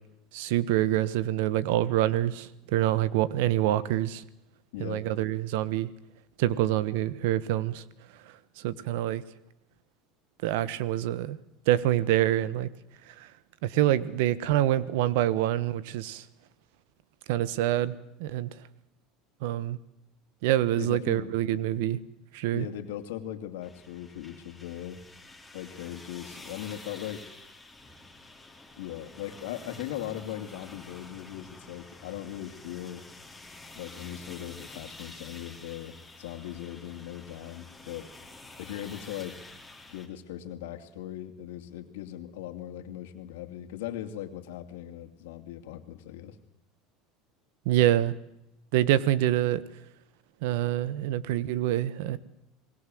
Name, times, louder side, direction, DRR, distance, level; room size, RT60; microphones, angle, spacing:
voice 1, 0.3-4.2 4.8-5.9 6.4-7.8 8.6-9.2 10.4-11.4 11.7-12.7 13.1-13.3 13.6-16.2 17.3-18.6 19.4-19.8 20.4-22.0 22.3-22.7 47.6-48.1 48.7-49.6 50.4-52.2, right 13 dB, 75° right, 18 dB, 1.3 m, -26 dB
voice 2, 4.7-5.1 20.8-21.3 22.5-25.0 25.5-27.3 28.8-33.1 33.8-38.1 38.6-39.4 39.9-46.4, left 12 dB, 85° left, 7 dB, 2.6 m, -39 dB
sound 1, 23.6-40.1, left 2 dB, 5° left, 4.1 m, -49 dB
27.5 x 20.5 x 7.8 m, 0.84 s
supercardioid pair, 110°, 0 cm